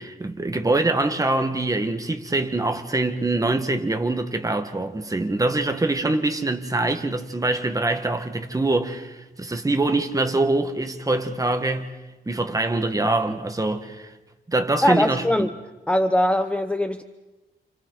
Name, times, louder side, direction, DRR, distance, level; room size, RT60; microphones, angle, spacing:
voice 1, 0.0-11.9 12.3-14.1 14.5-15.5, right 2 dB, 20° right, 1.6 m, -24 dB
voice 2, 14.8-15.5 15.9-17.0, left 1 dB, 5° left, 0.8 m, -21 dB
29.5 x 29.0 x 4.1 m
wide cardioid pair, 110°, 18 cm